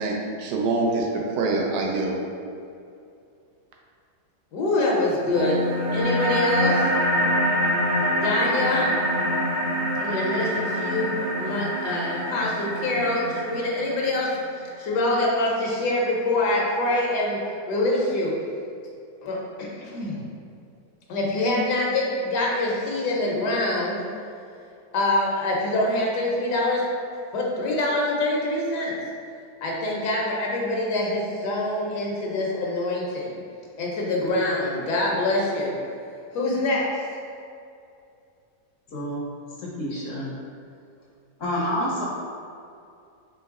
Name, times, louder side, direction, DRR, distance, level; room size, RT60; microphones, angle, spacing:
voice 1, 0.0-2.2, right 3 dB, 85° right, -1 dB, 1.2 m, -25 dB
voice 2, 4.5-5.6 5.9-6.7 7.8-8.9 10.0-14.3 14.8-18.3 19.2-20.2 21.1-24.0 24.9-26.8 27.3-29.0 29.6-33.3 33.8-35.7 36.3-37.0, left 2 dB, 80° left, -3 dB, 1.3 m, -25 dB
sound 1, 5.3-14.3, equal, 60° right, 1.4 m, -25 dB
voice 3, 38.9-39.2 39.6-40.3 41.4-42.1, equal, 65° left, -4 dB, 0.9 m, -28 dB
3.9 x 3.0 x 3.5 m, 2.5 s
omnidirectional pair, 1.8 m